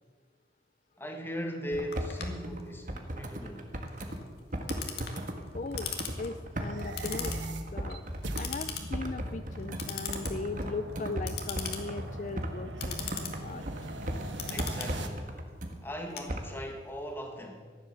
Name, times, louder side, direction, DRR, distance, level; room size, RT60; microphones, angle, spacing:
voice 1, 1.0-3.7 14.5-15.3 15.8-17.6, equal, 10° left, 2.1 m, -39 dB
sound 1, 1.7-4.2 4.5-8.4 8.9-12.6 12.8-15.8 16.3-16.4, equal, 45° right, 1.6 m, -37 dB
Clock, 1.9-16.9, left 7 dB, 60° left, 1.9 m, -42 dB
voice 2, 5.5-7.3 7.7-8.0 8.4-13.0 13.4-13.6, left 3 dB, 45° left, 0.5 m, -38 dB
sound 2, 6.6-15.1, right 1 dB, 90° right, 1.5 m, -41 dB
15.0 x 11.0 x 7.1 m
head